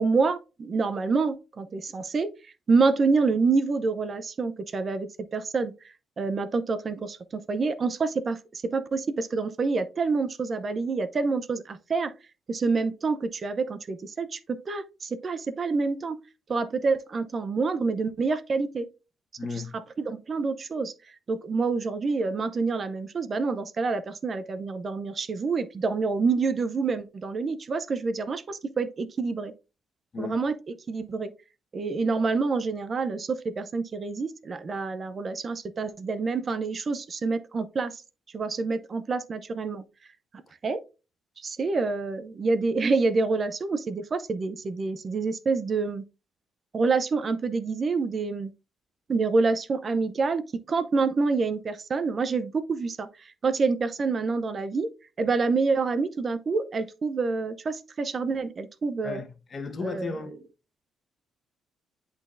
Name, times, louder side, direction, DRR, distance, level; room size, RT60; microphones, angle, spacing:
voice 1, 0.0-2.3 2.7-5.7 6.2-12.1 12.5-16.2 16.5-18.9 20.0-20.9 21.3-29.5 30.2-31.3 31.7-38.0 38.3-39.8 40.6-40.8 41.4-46.0 46.7-48.5 49.1-53.1 53.4-54.9 55.2-59.2 59.8-60.1, right 4 dB, 40° right, 0.6 m, -27 dB
voice 2, 19.4-19.8 30.1-30.3 59.0-60.3, left 4 dB, 40° left, 1.2 m, -35 dB
10.5 x 4.0 x 2.5 m
cardioid pair, 90°, 0 cm